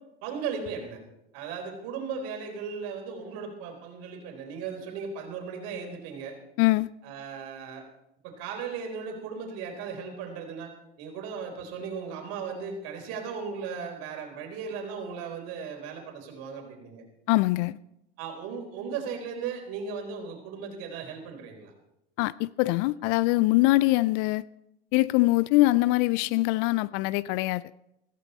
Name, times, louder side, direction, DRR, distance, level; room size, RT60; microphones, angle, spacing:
voice 1, 0.2-1.0 1.3-6.4 7.0-7.8 8.2-10.7 11.0-17.0 18.2-21.7, right 6 dB, 55° right, 4.0 m, -36 dB
voice 2, 6.6-6.9 17.3-17.8 22.2-24.4 24.9-27.6, left 19 dB, 50° left, 0.5 m, -23 dB
15.0 x 14.5 x 4.3 m
hypercardioid pair, 95°, 30 cm